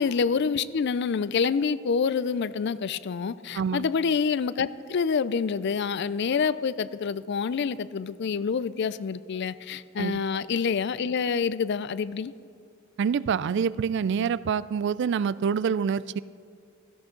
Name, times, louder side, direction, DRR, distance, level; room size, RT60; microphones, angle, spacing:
voice 1, 0.0-12.3, left 5 dB, 55° left, 16 dB, 0.4 m, -27 dB
voice 2, 3.5-3.9 10.0-10.2 13.0-16.2, right 6 dB, 60° right, 18 dB, 0.3 m, -26 dB
16.5 x 15.0 x 3.8 m, 2.3 s
head